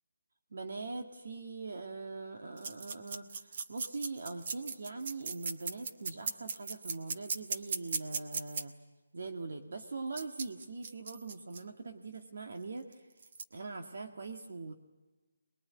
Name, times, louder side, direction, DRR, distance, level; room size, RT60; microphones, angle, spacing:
voice 1, 0.5-8.8 9.1-13.1 13.5-14.7, right 3 dB, 65° right, 4 dB, 1.8 m, -42 dB
sound 1, 2.6-8.6 10.2-11.6 12.9-13.0 13.2-13.4, right 4 dB, 40° right, 1.2 m, -38 dB
23.0 x 21.0 x 9.5 m, 1.2 s
hypercardioid pair, 165°, 0 cm